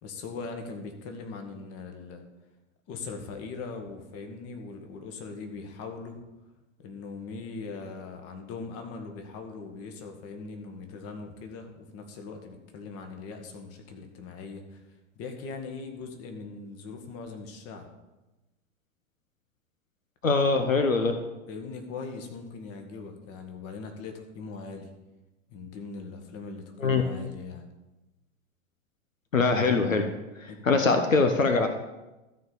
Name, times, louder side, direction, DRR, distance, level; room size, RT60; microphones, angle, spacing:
voice 1, 0.0-2.2 2.9-6.2 6.8-14.8 15.1-17.9 21.5-24.9 25.5-27.7 30.5-30.6, left 4 dB, 35° left, 5 dB, 1.7 m, -40 dB
voice 2, 20.2-21.2 26.8-27.0 29.3-30.1 30.4-31.7, left 4 dB, 85° left, 6 dB, 0.9 m, -23 dB
13.0 x 4.6 x 6.9 m, 1.0 s
figure-of-eight pair, 90°, 39 cm